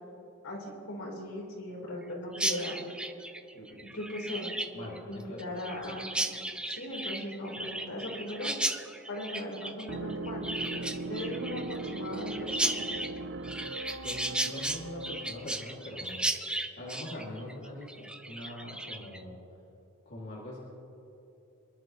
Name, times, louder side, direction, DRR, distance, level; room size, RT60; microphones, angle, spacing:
voice 1, 0.4-2.8 3.5-4.5 5.1-6.3 6.6-12.8, left 1 dB, 70° left, -3 dB, 3.7 m, -39 dB
Chirp tweet, 2.3-19.2, right 1 dB, 5° right, 0.5 m, -35 dB
voice 2, 4.7-5.4 14.0-16.2 16.8-19.4 20.1-20.6, left 1 dB, 50° left, -6 dB, 2.3 m, -42 dB
sound 1, 9.9-15.6, right 2 dB, 55° right, 0.5 m, -39 dB
25.5 x 11.5 x 3.0 m, 2.9 s
head